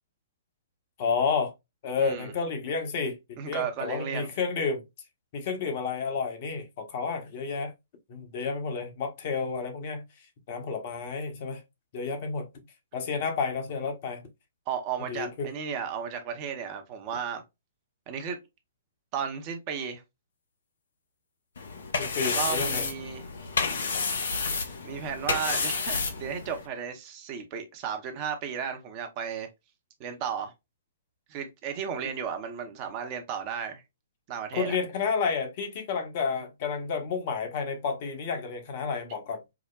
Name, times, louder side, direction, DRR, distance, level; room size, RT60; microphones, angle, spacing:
voice 1, 1.0-1.5 1.8-4.8 5.3-7.7 8.1-10.0 10.5-11.6 11.9-12.6 12.9-14.3 15.1-15.5 22.0-22.9 23.9-24.0 34.5-39.4, left 5 dB, 45° left, 1.1 m, -31 dB
voice 2, 2.0-2.3 3.4-4.3 14.7-17.4 18.1-18.4 19.1-20.0 22.3-23.2 24.8-29.5 30.0-30.5 31.3-33.8 34.3-34.8, right 7 dB, 35° right, 0.9 m, -34 dB
sound 1, 21.6-26.7, left 4 dB, 65° left, 0.8 m, -30 dB
4.8 x 2.1 x 2.3 m
figure-of-eight pair, 120°, 0 cm